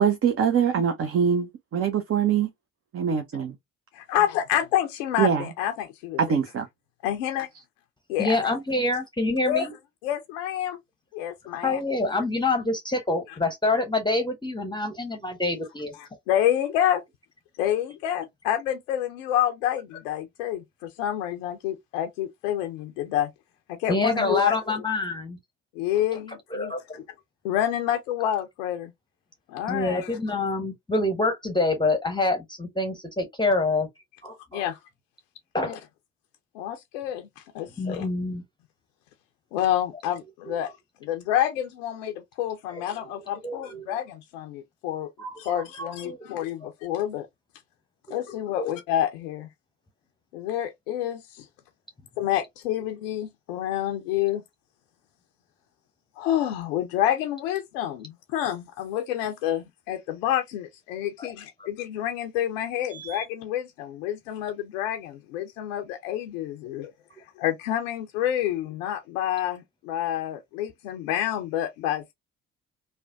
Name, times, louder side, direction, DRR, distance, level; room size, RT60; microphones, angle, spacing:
voice 1, 0.0-2.5 2.9-3.5 5.2-5.5 6.2-6.7, right 7 dB, 35° right, 0.6 m, -23 dB
voice 2, 3.9-6.2 7.0-7.5 8.1-8.4 9.4-9.7 10.0-10.8 11.1-11.8 16.0-17.0 17.6-23.3 23.7-24.6 25.8-27.0 27.4-28.9 29.5-30.2 34.5-34.8 35.6-35.7 36.5-38.1 39.5-40.7 41.0-45.1 45.4-47.3 48.1-49.5 50.3-51.5 52.2-54.4 56.2-66.9 67.4-72.1, left 11 dB, 80° left, 0.5 m, -28 dB
voice 3, 8.2-9.7 11.6-15.9 23.9-25.4 26.5-27.0 29.7-33.9 34.2-34.7 35.5-35.8 37.8-38.4 40.5-40.6 42.7-43.1 43.4-43.9 45.2-46.2 48.6-48.7 61.2-61.3 61.6-61.7 62.9-63.2, left 2 dB, 10° left, 0.8 m, -27 dB
3.2 x 2.1 x 2.5 m
hypercardioid pair, 45°, 37 cm